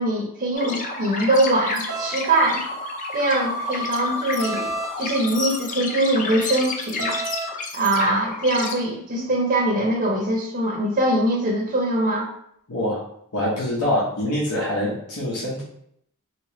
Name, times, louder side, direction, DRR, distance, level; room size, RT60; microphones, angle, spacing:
voice 1, 0.0-2.6 3.1-4.7 5.0-7.2 7.7-12.3, right 1 dB, 35° right, -2 dB, 0.6 m, -22 dB
sound 1, 0.5-7.5, left 2 dB, 10° left, 0.9 m, -35 dB
sound 2, 0.6-8.7, left 4 dB, 35° left, 0.4 m, -31 dB
sound 3, 1.9-2.2 4.4-5.0 7.0-7.5, right 4 dB, 85° right, 0.8 m, -30 dB
voice 2, 12.7-13.0 13.3-15.6, left 1 dB, 85° left, -6 dB, 0.9 m, -24 dB
3.0 x 2.9 x 2.9 m, 0.71 s
head